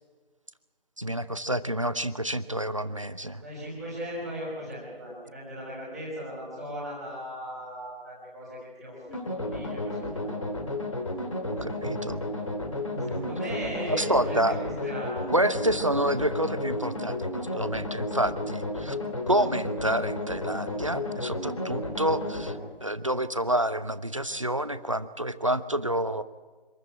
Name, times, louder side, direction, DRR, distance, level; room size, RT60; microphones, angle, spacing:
voice 1, 1.0-3.4 11.6-12.2 13.0-13.3 13.9-14.6 15.3-19.0 19.3-26.2, right 1 dB, 30° right, 14 dB, 0.7 m, -28 dB
voice 2, 3.4-9.0 9.3-10.3 13.0-15.2, equal, ahead, -14 dB, 4.2 m, -37 dB
sound 1, 9.1-22.5, left 1 dB, 30° left, 2.5 m, -32 dB
26.0 x 14.0 x 9.2 m, 1.4 s
figure-of-eight pair, 170°, 30 cm